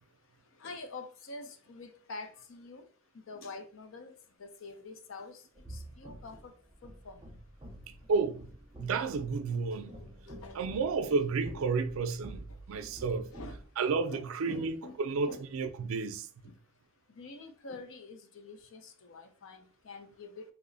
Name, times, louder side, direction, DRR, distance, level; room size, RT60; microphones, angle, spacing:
voice 1, 0.6-2.9 3.1-4.1 4.4-5.4 5.7-6.5 6.8-7.2 10.0-10.1 10.4-10.6 11.6-11.7 13.3-13.6 14.1-15.4 16.4-16.5 17.2-20.5, left 3 dB, 70° left, 0.5 m, -46 dB
sound 1, 5.5-13.6, equal, 20° right, 0.5 m, -48 dB
voice 2, 7.9-8.5 8.8-10.0 10.5-13.3 13.8-16.3, right 4 dB, 80° right, 0.4 m, -31 dB
3.0 x 2.0 x 3.8 m
head